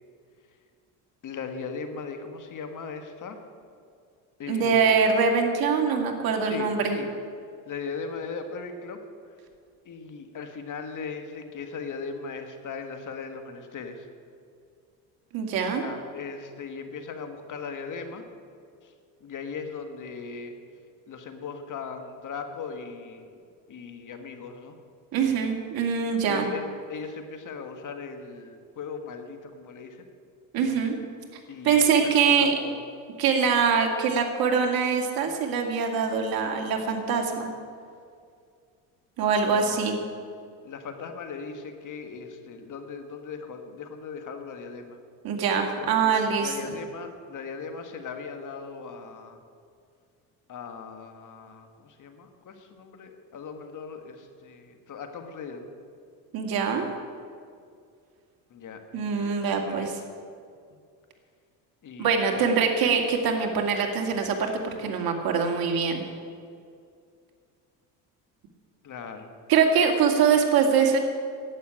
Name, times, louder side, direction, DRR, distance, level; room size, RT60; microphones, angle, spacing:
voice 1, 1.2-3.4 4.4-5.0 6.4-7.1 7.6-9.0 9.8-14.1 15.6-18.2 18.8-18.9 19.2-20.6 21.1-23.3 23.7-24.8 26.2-30.0 31.5-32.9 39.4-39.9 40.6-45.0 45.8-49.4 50.5-55.7 58.5-60.0 60.7-60.8 61.8-62.5 68.8-69.3, left 5 dB, 50° left, 6 dB, 1.7 m, -38 dB
voice 2, 4.5-7.0 15.3-15.8 25.1-26.5 30.5-31.0 31.6-32.5 33.2-37.5 39.2-40.0 45.2-46.7 56.3-56.8 58.9-60.0 62.0-64.5 64.8-66.0 69.5-71.0, right 6 dB, 60° right, 2 dB, 2.4 m, -23 dB
11.5 x 8.5 x 9.1 m, 2.3 s
supercardioid pair, 95°, 41 cm